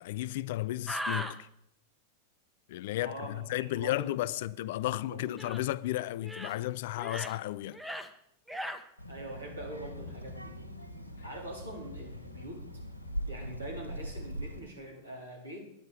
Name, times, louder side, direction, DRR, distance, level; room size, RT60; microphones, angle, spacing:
voice 1, 0.0-1.5 2.7-7.8, left 15 dB, 55° left, 0.4 m, -33 dB
sound 1, 0.9-1.3 5.4-5.6 6.2-6.5 7.0-7.4 7.7-8.1 8.5-8.8, equal, ahead, 0.8 m, -37 dB
voice 2, 3.0-4.5 5.1-5.4 9.1-10.6 11.2-12.6 13.3-15.6, right 1 dB, 80° right, 3.8 m, -44 dB
Child speech kid speaking, 9.0-14.6, equal, 85° left, 1.4 m, -41 dB
10.0 x 9.9 x 5.1 m
figure-of-eight pair, 90°, 0 cm